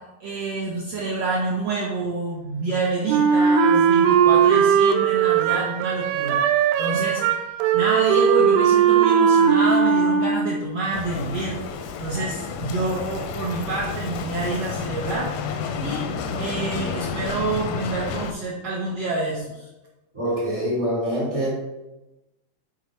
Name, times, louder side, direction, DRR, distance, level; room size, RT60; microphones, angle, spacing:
voice 1, 0.0-6.4 6.8-7.2 7.7-11.6 12.0-15.3 15.8-16.1 16.3-19.7, right 3 dB, 70° right, -4 dB, 1.5 m, -27 dB
Wind instrument woodwind instrument, 3.1-10.6, right 7 dB, 90° right, 1.7 m, -18 dB
Bicycle, 10.9-18.3, left 6 dB, 80° left, 1.8 m, -30 dB
voice 2, 20.1-21.5, equal, 45° right, -8 dB, 0.9 m, -25 dB
7.8 x 3.8 x 4.4 m, 1.0 s
omnidirectional pair, 4.0 m